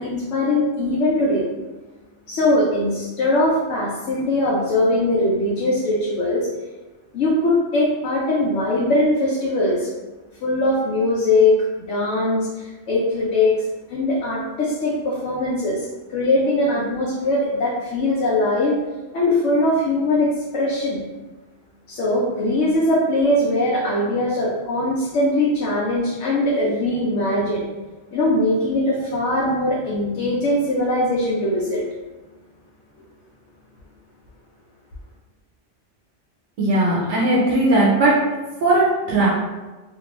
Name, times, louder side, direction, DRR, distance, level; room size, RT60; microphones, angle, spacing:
voice 1, 0.0-1.4 2.3-6.5 7.1-9.9 10.4-11.6 11.9-18.7 19.1-21.0 21.9-27.6 28.1-31.8, left 1 dB, 90° left, -5 dB, 0.9 m, -21 dB
voice 2, 36.6-38.2 38.6-39.3, right 2 dB, 90° right, -5 dB, 1.0 m, -18 dB
2.5 x 2.3 x 3.0 m, 1.2 s
omnidirectional pair, 1.2 m